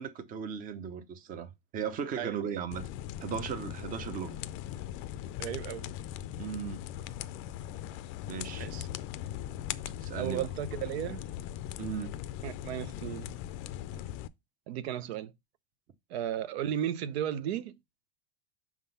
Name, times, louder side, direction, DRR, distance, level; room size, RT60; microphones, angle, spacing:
voice 1, 0.0-2.9 3.2-4.4 6.4-6.8 8.3-8.7 10.0-10.5 11.8-12.1, right 7 dB, 25° right, 0.7 m, -37 dB
sound 1, 2.7-14.3, left 12 dB, 40° left, 0.4 m, -40 dB
voice 2, 5.4-5.9 8.6-8.9 10.2-11.3 12.4-13.3 14.7-15.3 16.1-17.7, right 10 dB, 85° right, 0.7 m, -34 dB
6.0 x 3.7 x 5.5 m
supercardioid pair, 155°, 31 cm